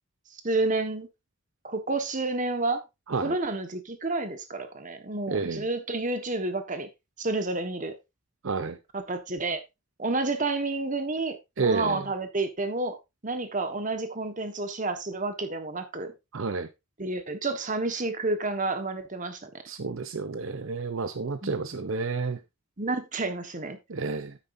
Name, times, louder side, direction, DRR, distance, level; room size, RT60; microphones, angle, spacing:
voice 1, 0.3-1.1 1.6-2.8 3.2-6.9 7.2-7.9 8.9-9.6 10.0-13.0 13.2-16.1 17.0-19.5 21.4-21.6 22.8-23.8, right 2 dB, 35° right, 1.4 m, -30 dB
voice 2, 5.3-5.6 8.4-8.8 11.6-12.1 16.3-16.7 19.7-22.4 23.9-24.4, right 4 dB, 65° right, 0.6 m, -30 dB
9.7 x 9.1 x 2.6 m
head